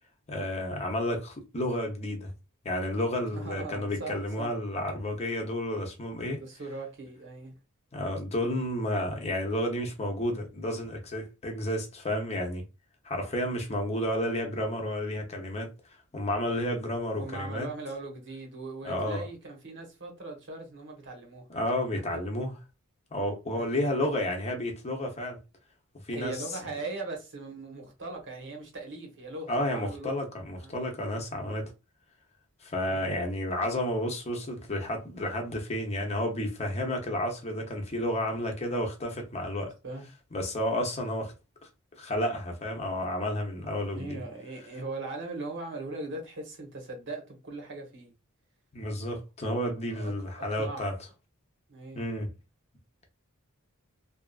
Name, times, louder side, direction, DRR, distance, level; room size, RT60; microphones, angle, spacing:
voice 1, 0.3-2.3 2.6-6.4 7.9-12.6 13.0-15.7 16.1-17.7 18.8-19.3 21.5-22.6 23.1-25.4 26.1-26.4 29.5-31.7 32.6-39.7 40.3-41.3 42.0-44.2 48.7-50.9 51.9-52.3, left 1 dB, 30° left, 0.7 m, -31 dB
voice 2, 3.3-4.5 6.2-7.5 17.2-21.5 21.9-22.2 23.5-23.6 26.1-30.3 30.6-30.8 32.9-33.1 39.8-40.1 43.9-48.1 49.9-50.1 50.4-50.9 51.7-52.1, right 3 dB, 55° right, 1.0 m, -40 dB
2.7 x 2.4 x 2.3 m
head